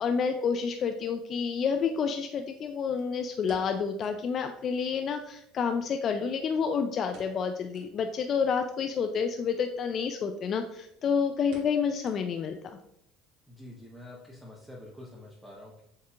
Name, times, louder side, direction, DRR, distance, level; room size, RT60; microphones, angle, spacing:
voice 1, 0.0-12.6, left 6 dB, 45° left, 6 dB, 0.3 m, -29 dB
sound 1, 3.0-4.3 4.6-4.7 5.0-5.1 5.8-6.6 7.1-7.5 7.7-8.0 8.5-8.6 9.5-9.8 10.2-10.3 10.6-11.0 11.5-12.6 12.9-13.0 13.6-13.9 14.2-14.3, right 2 dB, 65° right, 1.0 m, -53 dB
voice 2, 13.5-15.8, left 1 dB, 5° right, -3 dB, 0.9 m, -47 dB
7.4 x 2.8 x 2.4 m, 0.78 s
hypercardioid pair, 75°, 0 cm